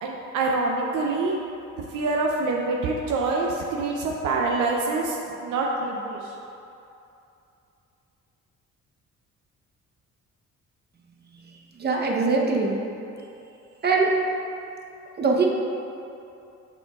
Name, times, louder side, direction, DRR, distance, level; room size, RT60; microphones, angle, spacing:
voice 1, 0.0-1.4 1.9-6.3, right 3 dB, 80° right, -1 dB, 0.6 m, -26 dB
voice 2, 11.8-12.7 13.8-14.1 15.2-15.5, right 4 dB, 35° right, 0 dB, 0.8 m, -22 dB
6.8 x 5.9 x 2.3 m, 2.7 s
cardioid pair, 90°, 30 cm